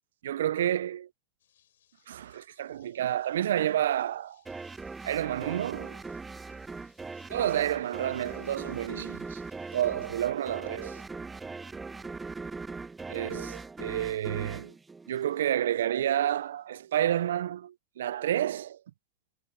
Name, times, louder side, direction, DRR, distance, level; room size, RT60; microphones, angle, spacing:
voice 1, 0.2-1.1 2.1-4.4 5.0-6.0 7.3-9.4 9.7-11.0 13.1-14.7 15.1-18.8, right 11 dB, 80° right, 0.3 m, -30 dB
sound 1, 1.4-9.9, left 11 dB, 85° left, 3.9 m, -69 dB
sound 2, 4.5-15.7, right 4 dB, 15° right, 0.7 m, -40 dB
hypercardioid pair, 110°, 0 cm